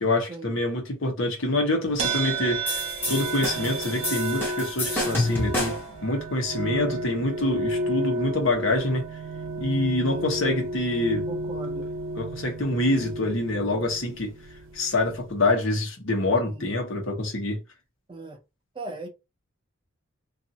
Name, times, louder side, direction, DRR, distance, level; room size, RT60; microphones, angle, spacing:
voice 1, 0.0-2.7 3.1-9.0 9.6-11.3 12.2-14.3 14.7-17.6, left 2 dB, 65° left, 1.0 m, -26 dB
sound 1, 2.0-15.5, right 2 dB, 65° right, 0.6 m, -32 dB
sound 2, 2.7-6.0, left 1 dB, 10° left, 0.8 m, -29 dB
voice 2, 11.3-11.9 16.5-16.7 18.1-18.4 18.7-19.1, right 2 dB, 25° right, 0.6 m, -38 dB
2.6 x 2.6 x 2.8 m
head